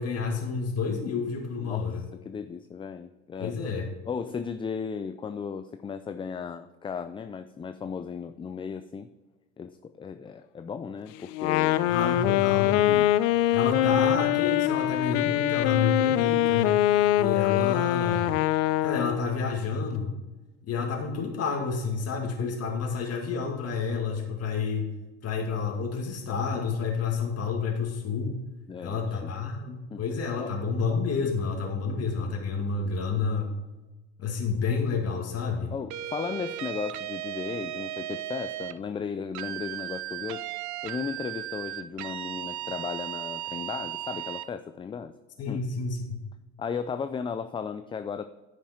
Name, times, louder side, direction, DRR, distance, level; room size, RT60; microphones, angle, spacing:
voice 1, 0.0-2.0 3.4-3.9 11.9-12.8 13.5-16.8 17.2-18.4 18.8-20.1 20.7-24.9 25.2-28.4 28.8-33.5 34.2-35.7 45.4-46.2, left 5 dB, 40° left, 1 dB, 2.1 m, -29 dB
voice 2, 1.6-3.6 4.1-9.1 9.6-12.5 12.8-13.1 13.8-14.0 28.7-29.5 29.9-30.0 30.4-30.5 35.7-40.4 40.8-45.1 45.5-45.6 46.6-48.3, left 6 dB, 15° left, 10 dB, 0.3 m, -36 dB
Wind instrument woodwind instrument, 11.3-19.3, left 13 dB, 80° left, 0.5 m, -23 dB
sound 1, 35.9-38.8 39.3-44.5, right 13 dB, 50° right, 0.6 m, -36 dB
10.0 x 6.0 x 4.3 m, 1.1 s
supercardioid pair, 85°, 36 cm